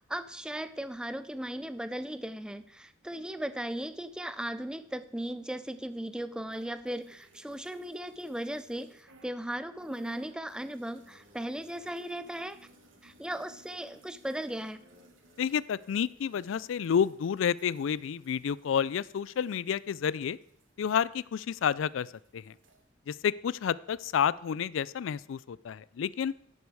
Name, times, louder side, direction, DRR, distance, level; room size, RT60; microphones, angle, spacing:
voice 1, 0.1-12.7 13.0-14.8, right 1 dB, 5° right, 13 dB, 0.4 m, -37 dB
sound 1, 6.5-9.4 9.7-21.6 21.9-22.8, right 1 dB, 70° right, 1.4 m, -62 dB
sound 2, 10.9-17.9, left 1 dB, 50° right, 3.8 m, -64 dB
voice 2, 15.4-20.4 20.8-22.5 23.1-26.3, left 8 dB, 70° left, 20 dB, 0.3 m, -30 dB
10.5 x 8.4 x 4.8 m, 0.69 s
head